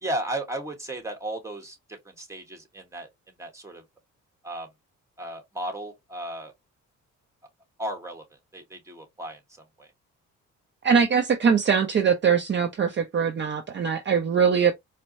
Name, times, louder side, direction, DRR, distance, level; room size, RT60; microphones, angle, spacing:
voice 1, 0.0-3.8 4.4-4.7 5.2-6.5 7.8-8.2 8.5-9.4 9.8-9.9, right 1 dB, 10° right, 1.3 m, -35 dB
voice 2, 10.8-14.7, right 6 dB, 40° right, 0.7 m, -22 dB
4.5 x 2.1 x 2.6 m
cardioid pair, 90°, 30 cm